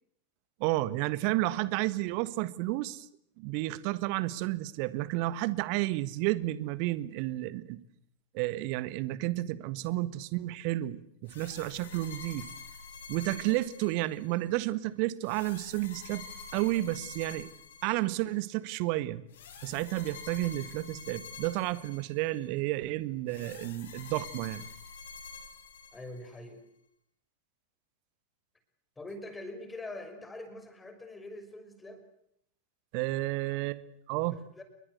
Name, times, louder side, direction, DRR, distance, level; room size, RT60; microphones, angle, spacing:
voice 1, 0.6-3.1 3.4-7.8 8.3-12.5 13.1-16.2 16.5-17.5 17.8-19.2 19.6-24.6 32.9-33.8 34.1-34.4, right 17 dB, 45° right, 16 dB, 1.5 m, -31 dB
sound 1, 11.3-14.4 15.2-18.3 19.3-22.5 23.3-26.4, left 5 dB, 60° left, 6.8 m, -47 dB
voice 2, 25.9-26.6 29.0-32.0 34.1-34.3 34.6-34.7, left 2 dB, 10° left, 8 dB, 5.8 m, -43 dB
30.0 x 23.0 x 8.3 m, 0.73 s
figure-of-eight pair, 90°, 0 cm